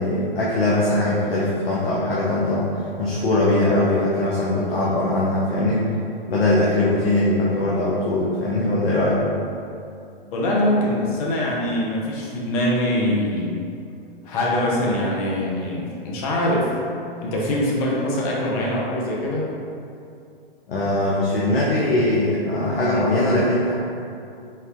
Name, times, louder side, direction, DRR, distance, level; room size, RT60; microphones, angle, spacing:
voice 1, 0.0-5.9 6.3-9.2 20.7-23.7, left 1 dB, 70° left, -6 dB, 0.8 m, -21 dB
voice 2, 10.3-13.6 14.2-16.7 17.2-19.5, left 1 dB, 40° left, -3 dB, 0.9 m, -23 dB
4.3 x 2.6 x 3.6 m, 2.5 s
figure-of-eight pair, 115°, 30 cm